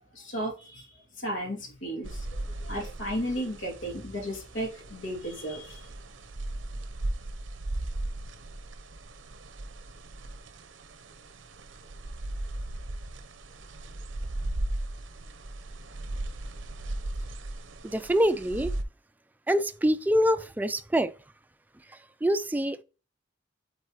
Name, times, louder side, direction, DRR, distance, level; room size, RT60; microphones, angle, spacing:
voice 1, 0.1-0.9 1.2-5.8, equal, 85° left, 2.4 m, -34 dB
sound 1, 2.0-18.8, right 1 dB, 80° right, 0.7 m, -37 dB
voice 2, 17.8-18.7 19.5-21.1 22.2-22.8, equal, 10° right, 0.3 m, -25 dB
8.1 x 4.1 x 3.0 m
head